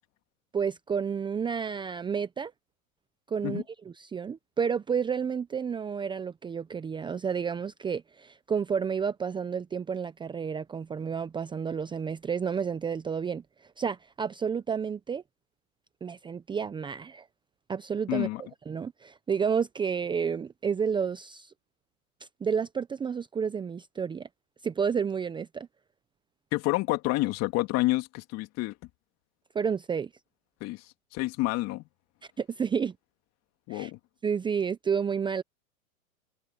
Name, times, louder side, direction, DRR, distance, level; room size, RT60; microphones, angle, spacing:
voice 1, 0.5-2.5 3.3-3.6 4.0-13.4 13.8-15.2 16.0-17.3 17.7-21.5 22.2-24.3 24.6-25.7 29.5-30.1 32.4-32.9 33.7-33.9 34.2-35.4, right 6 dB, 10° right, 0.9 m, -30 dB
voice 2, 18.1-18.4 26.5-28.8 30.6-31.8 33.7-34.0, left 19 dB, 35° left, 2.6 m, -29 dB
hypercardioid pair, 120°, 44 cm